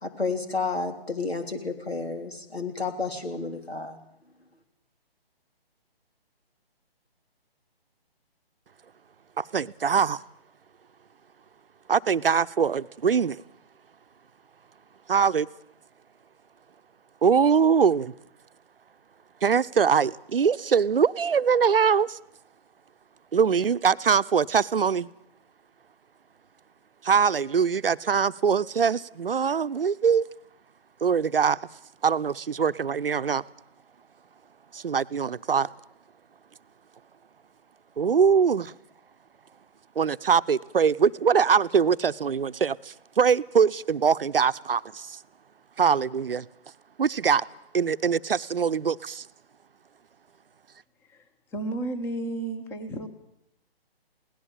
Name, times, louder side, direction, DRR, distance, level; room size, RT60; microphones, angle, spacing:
voice 1, 0.0-4.0, left 4 dB, 85° left, 6 dB, 3.3 m, -31 dB
voice 2, 9.4-10.2 11.9-13.4 15.1-15.5 17.2-18.1 19.4-22.2 23.3-25.1 27.0-30.3 31.0-31.6 32.0-33.4 34.7-35.7 38.0-38.7 40.0-45.2 45.8-46.5 47.0-47.5 47.7-49.3, right 6 dB, 65° right, 14 dB, 0.7 m, -23 dB
voice 3, 51.0-53.1, right 2 dB, 10° left, 9 dB, 0.9 m, -33 dB
22.0 x 17.5 x 7.3 m, 0.79 s
figure-of-eight pair, 140°, 30 cm